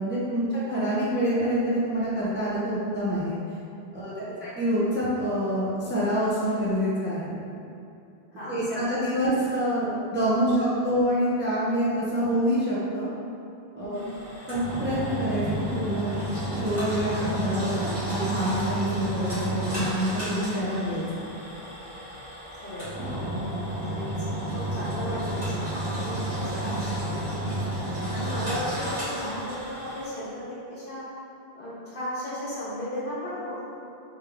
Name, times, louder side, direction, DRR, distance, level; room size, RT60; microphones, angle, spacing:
voice 1, 0.0-3.4 3.9-7.4 8.5-13.1 13.7-14.0 14.5-16.2 16.5-21.2, equal, 15° right, -9 dB, 0.5 m, -26 dB
voice 2, 4.0-4.4 8.3-9.0 9.6-10.0 10.2-10.6 13.8-14.2 22.5-23.0 23.9-27.6 28.1-31.0 31.5-33.6, equal, 60° left, -9 dB, 1.4 m, -36 dB
Engine, 13.9-30.0, right 1 dB, 40° right, 1.5 m, -31 dB
3.6 x 3.4 x 3.4 m, 2.7 s
omnidirectional pair, 1.1 m